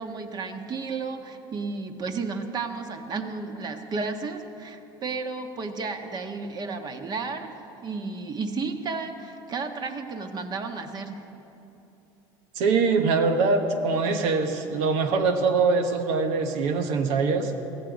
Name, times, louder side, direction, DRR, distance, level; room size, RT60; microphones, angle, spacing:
voice 1, 0.0-7.5 7.8-11.2, right 4 dB, 35° right, 6 dB, 1.4 m, -33 dB
voice 2, 12.6-17.5, right 4 dB, 70° right, 6 dB, 1.3 m, -23 dB
15.5 x 14.5 x 5.2 m, 2.9 s
supercardioid pair, 100°, 12 cm